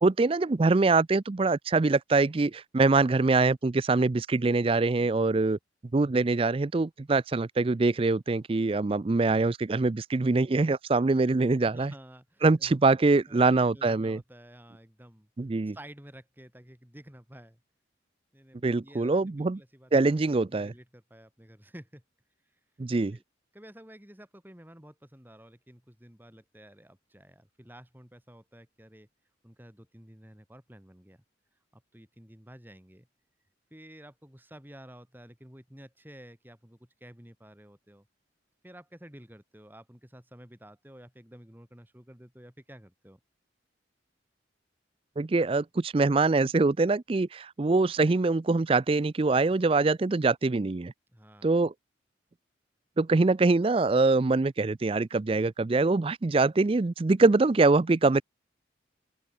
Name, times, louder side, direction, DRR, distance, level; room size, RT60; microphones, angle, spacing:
voice 1, 0.0-5.6 5.9-11.9 12.4-14.2 15.4-15.8 18.6-19.6 19.9-20.7 22.8-23.2 45.2-50.9 51.4-51.7 53.0-58.2, right 3 dB, 30° right, 0.4 m, -24 dB
voice 2, 11.6-12.8 13.3-15.3 15.7-17.6 18.3-19.9 20.4-22.0 22.5-22.6 22.9-23.2 23.5-29.1 29.4-31.2 31.7-33.1 33.7-38.1 38.6-43.2 51.1-51.6, equal, 10° right, 2.9 m, -51 dB
open air
head